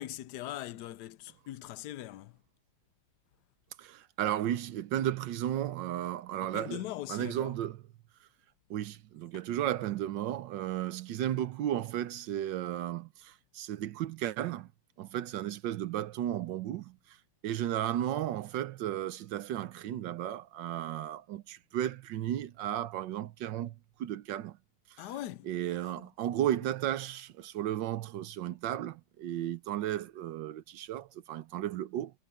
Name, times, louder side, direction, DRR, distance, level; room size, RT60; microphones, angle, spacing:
voice 1, 0.0-2.4 6.4-7.5 9.3-9.4 25.0-25.5 25.8-26.1, left 14 dB, 70° left, 1.2 m, -41 dB
voice 2, 3.8-6.8 7.1-7.8 8.7-14.7 15.0-17.0 17.4-24.6 25.0-25.1 25.4-32.1, right 12 dB, 85° right, 1.4 m, -34 dB
omnidirectional pair, 2.0 m